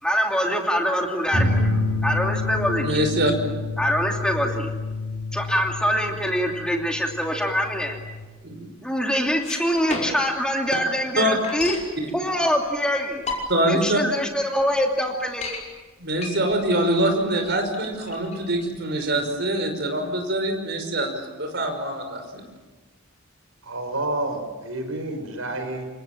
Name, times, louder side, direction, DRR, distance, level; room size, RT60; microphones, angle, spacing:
voice 1, 0.0-3.1 3.8-4.7 5.3-8.0 8.8-11.8 12.1-13.2 13.7-15.5, equal, 5° left, 1 dB, 2.8 m, -24 dB
sound 1, 1.3-8.2, left 2 dB, 55° left, 5.1 m, -28 dB
voice 2, 2.8-3.3 8.4-8.6 11.2-11.3 12.0-12.1 13.5-14.0 16.0-22.4, right 1 dB, 55° right, 5 dB, 5.6 m, -24 dB
sound 2, 9.3-10.4 10.7-10.8 11.0-11.9 12.7-12.8 13.1-13.8 14.2-14.3 14.6-14.7 15.1-15.6 16.2-19.1, left 3 dB, 35° left, 5.6 m, -33 dB
voice 3, 23.6-25.8, right 2 dB, 85° right, 6 dB, 5.7 m, -29 dB
28.5 x 25.5 x 7.5 m, 1.3 s
head